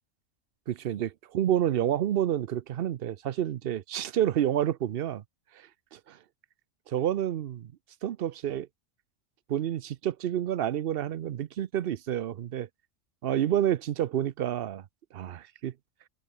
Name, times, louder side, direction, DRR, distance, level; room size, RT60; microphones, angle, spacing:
voice 1, 0.7-5.2 5.9-6.2 6.9-7.7 8.0-8.7 9.5-12.7 13.2-14.8 15.1-15.7, right 11 dB, 55° right, 0.7 m, -29 dB
omnidirectional pair, 1.4 m